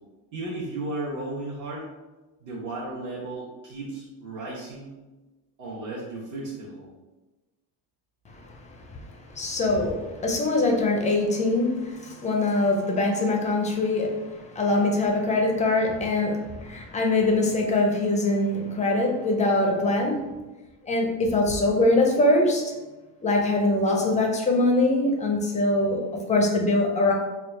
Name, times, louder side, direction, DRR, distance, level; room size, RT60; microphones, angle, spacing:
voice 1, 0.3-1.9 2.4-4.9 5.6-6.9, right 2 dB, 45° right, -7 dB, 1.0 m, -34 dB
voice 2, 8.3-8.6 8.9-9.0 9.2-20.2 20.8-22.7 23.2-27.1, left 2 dB, 15° left, 1 dB, 0.5 m, -23 dB
3.5 x 2.4 x 4.3 m, 1.1 s
cardioid pair, 155°, 45 cm